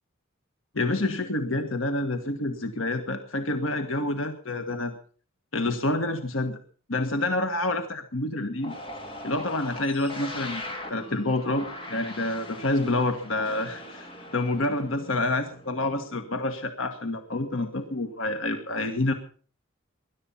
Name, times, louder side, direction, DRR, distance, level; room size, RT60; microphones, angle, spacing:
voice 1, 0.7-4.9 5.5-6.6 6.9-8.7 9.2-14.1 14.3-19.1, left 2 dB, 65° left, 7 dB, 1.6 m, -28 dB
sound 1, 8.6-16.5, left 1 dB, 25° left, 3.5 m, -41 dB
20.5 x 12.0 x 5.7 m, 0.43 s
head